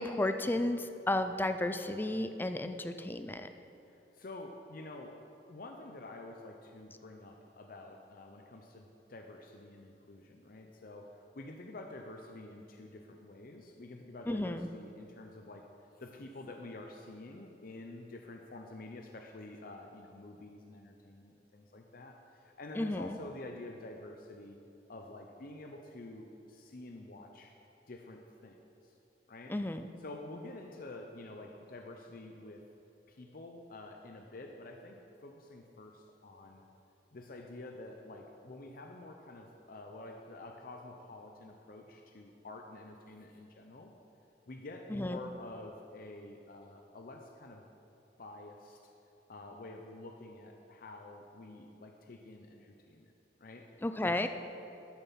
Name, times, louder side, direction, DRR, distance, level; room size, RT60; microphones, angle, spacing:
voice 1, 0.0-3.5 14.3-14.7 22.8-23.2 29.5-29.9 44.9-45.2 53.8-54.3, left 1 dB, 10° left, 9 dB, 0.4 m, -33 dB
voice 2, 3.9-5.2 5.5-15.7 16.0-24.6 24.9-27.5 27.9-28.9 29.3-29.6 30.0-32.7 33.1-36.6 37.1-43.9 44.5-47.7 48.2-48.9 49.3-53.1 53.4-53.9, left 2 dB, 55° left, 3 dB, 0.6 m, -48 dB
12.5 x 7.0 x 5.7 m, 2.9 s
head